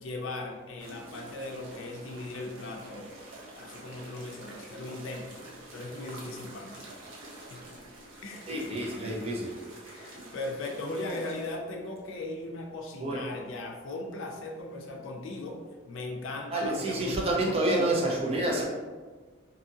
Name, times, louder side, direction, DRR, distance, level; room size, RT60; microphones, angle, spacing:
voice 1, 0.0-3.1 3.5-5.4 5.7-6.8 7.5-7.6 8.2-8.4 9.8-15.6 15.9-17.3, left 2 dB, 70° left, 1 dB, 0.4 m, -38 dB
sound 1, 0.8-11.6, right 1 dB, 75° right, 0.6 m, -47 dB
voice 2, 8.5-9.5 13.0-13.2 16.5-18.7, right 1 dB, 30° right, -2 dB, 0.5 m, -28 dB
2.7 x 2.5 x 2.6 m, 1.4 s
head